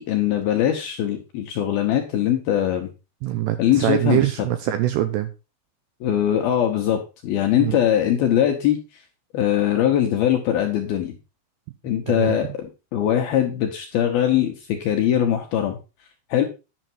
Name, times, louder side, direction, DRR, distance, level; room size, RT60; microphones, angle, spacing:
voice 1, 0.0-2.9 3.6-4.2 6.0-8.8 9.3-11.2 11.8-15.8 16.3-16.4, left 10 dB, 75° left, 4 dB, 2.3 m, -21 dB
voice 2, 3.2-5.3 7.6-7.8 12.1-12.4, right 13 dB, 80° right, 10 dB, 2.5 m, -23 dB
10.5 x 6.5 x 4.4 m, 0.30 s
omnidirectional pair, 5.6 m